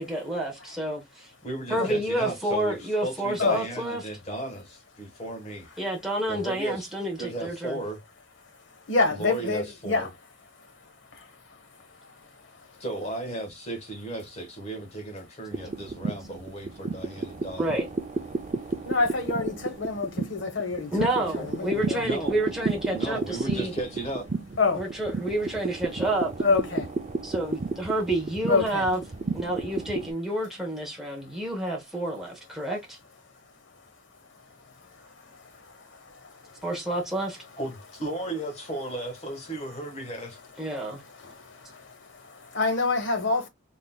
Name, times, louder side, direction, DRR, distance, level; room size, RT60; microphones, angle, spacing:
voice 1, 0.1-1.3 1.7-4.0 5.8-7.8 17.6-17.9 20.9-23.7 24.7-26.3 27.2-29.0 29.3-33.0 36.6-37.4 40.6-41.0, right 1 dB, ahead, 1.1 m, -29 dB
voice 2, 1.4-5.7 6.3-6.9 7.2-8.0 9.1-10.1 12.8-17.7 22.0-22.4 22.9-24.3 37.6-40.4, right 1 dB, 35° left, 1.3 m, -35 dB
voice 3, 8.7-10.1 10.6-12.8 18.6-22.0 24.6-24.8 26.4-26.9 28.5-28.8 34.4-36.7 40.7-43.5, left 3 dB, 70° left, 1.1 m, -29 dB
sound 1, 15.5-30.1, right 3 dB, 35° right, 0.4 m, -32 dB
3.8 x 3.8 x 2.2 m
head